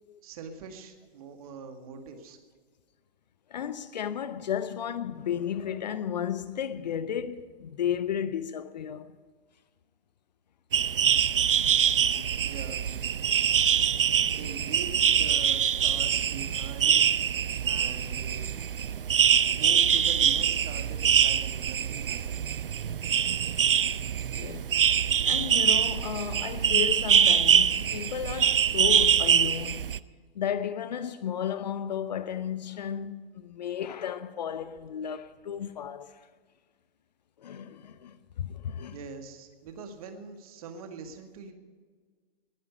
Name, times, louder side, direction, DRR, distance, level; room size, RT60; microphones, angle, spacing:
voice 1, 0.2-2.4 12.4-13.0 14.4-17.0 17.6-18.5 19.5-22.4 38.9-41.5, right 5 dB, 40° right, 2.0 m, -43 dB
voice 2, 3.5-9.1 12.1-12.2 24.3-24.7 25.3-29.9 30.4-36.2 37.4-39.0, left 9 dB, 45° left, 0.8 m, -33 dB
sound 1, 10.7-30.0, right 8 dB, 65° right, 0.6 m, -24 dB
20.0 x 11.0 x 5.4 m
figure-of-eight pair, 120°, 29 cm